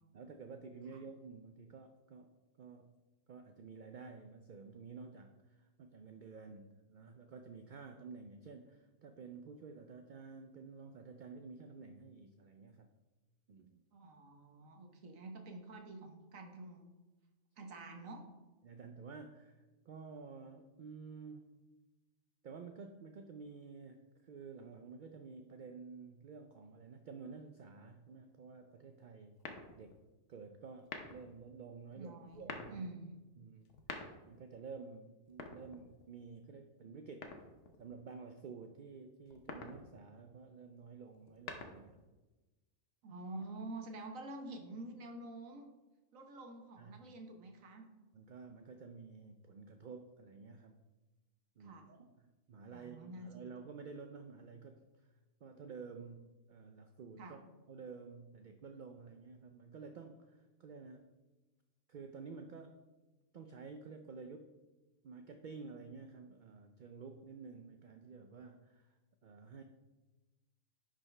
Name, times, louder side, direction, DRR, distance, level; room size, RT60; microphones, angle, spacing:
voice 1, 0.1-2.3 2.6-3.0 3.3-12.9 13.5-13.8 18.6-21.5 22.4-29.4 29.8-30.0 30.3-32.9 33.4-33.7 34.2-37.5 37.8-42.0 46.8-47.0 48.1-50.8 51.6-54.8 55.4-57.4 57.7-61.0 61.9-62.7 63.3-64.6 65.0-68.9 69.2-69.6, right 5 dB, 60° right, 6 dB, 0.5 m, -51 dB
voice 2, 13.9-16.9 17.6-18.3 32.0-33.2 43.0-45.7 46.1-47.9 51.6-51.9 52.7-53.5 57.2-57.4, right 2 dB, 80° right, 4 dB, 1.4 m, -48 dB
sound 1, 29.4-30.0 30.8-31.4 32.3-32.8 33.6-34.4 35.3-36.2 37.2-37.8 39.3-39.8 41.1-42.0, left 4 dB, 65° left, 1.2 m, -47 dB
10.5 x 5.1 x 3.3 m, 1.1 s
omnidirectional pair, 1.4 m